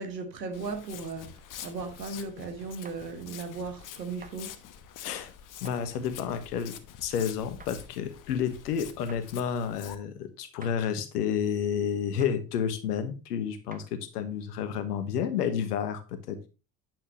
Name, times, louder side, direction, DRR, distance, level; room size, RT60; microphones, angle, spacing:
voice 1, 0.0-4.6, right 4 dB, 80° right, 1.6 m, -37 dB
Walk footsteps, 0.5-9.9, left 10 dB, 40° left, 1.1 m, -46 dB
sound 1, 2.8-3.0 4.2-4.4 5.6-5.8 7.6-7.8 9.1-9.3 10.6-10.8 12.2-12.4 13.7-13.9, right 5 dB, 15° right, 1.1 m, -49 dB
voice 2, 5.0-5.3 5.6-6.7 7.0-16.5, left 8 dB, 70° left, 1.4 m, -30 dB
9.1 x 7.8 x 3.0 m
figure-of-eight pair, 65°, 49 cm